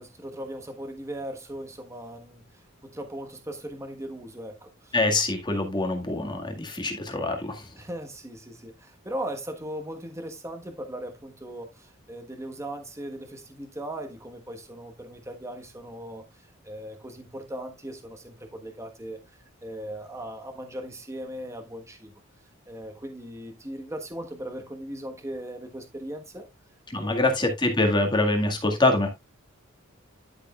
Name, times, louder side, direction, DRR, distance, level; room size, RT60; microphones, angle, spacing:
voice 1, 0.0-4.9 7.8-19.2 19.6-22.1 22.7-26.5 26.9-27.3, right 1 dB, 15° right, 1.3 m, -38 dB
voice 2, 4.9-7.6 26.9-29.1, left 2 dB, 20° left, 1.9 m, -24 dB
11.5 x 6.6 x 2.4 m
head